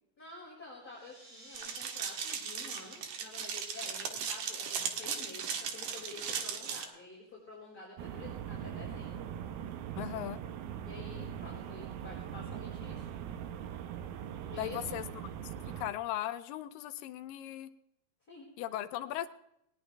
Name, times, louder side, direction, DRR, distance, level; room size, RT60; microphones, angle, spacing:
voice 1, 0.2-9.3 10.8-13.1 14.5-15.0 18.3-18.5, left 3 dB, 25° left, -7 dB, 5.3 m, -49 dB
sound 1, 0.9-6.1, right 1 dB, 50° right, 5.7 m, -56 dB
sound 2, 1.5-6.8, right 7 dB, 65° right, 2.8 m, -37 dB
sound 3, 8.0-15.9, right 9 dB, 85° right, 2.9 m, -41 dB
voice 2, 10.0-10.4 14.6-15.0 15.8-17.7 18.6-19.3, left 12 dB, 80° left, 12 dB, 2.3 m, -37 dB
20.5 x 19.0 x 3.4 m, 0.81 s
omnidirectional pair, 4.1 m